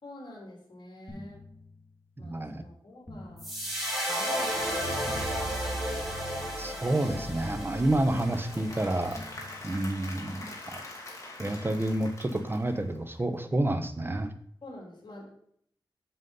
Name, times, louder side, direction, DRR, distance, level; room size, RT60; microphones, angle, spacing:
voice 1, 0.0-1.5 2.2-3.5 4.0-5.2 14.6-15.3, left 1 dB, 65° left, -2 dB, 3.2 m, -47 dB
sound 1, 1.1-2.3 3.1-4.3 5.1-6.3 7.1-8.3 9.1-10.3, left 1 dB, 20° left, 2.1 m, -48 dB
voice 2, 2.2-2.6 6.6-9.2 9.6-10.8 11.4-14.3, right 1 dB, 30° right, 8 dB, 1.1 m, -29 dB
sound 2, 3.4-9.7, equal, ahead, 4.1 m, -33 dB
Applause / Crowd, 7.3-13.3, left 2 dB, 40° left, 2.6 m, -45 dB
7.8 x 7.2 x 4.0 m, 0.66 s
wide cardioid pair, 75°, 8 cm